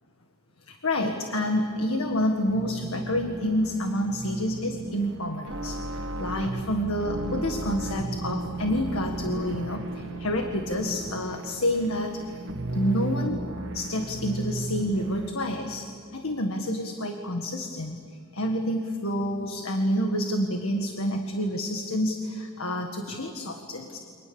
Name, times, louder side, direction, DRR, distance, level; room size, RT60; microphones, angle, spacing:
voice 1, 0.7-12.4 12.7-13.4 13.7-18.0 18.3-24.0, equal, 80° left, 4 dB, 1.8 m, -28 dB
sound 1, 1.5-15.3, right 2 dB, 60° right, 1.7 m, -35 dB
29.0 x 25.0 x 7.1 m, 2.4 s
head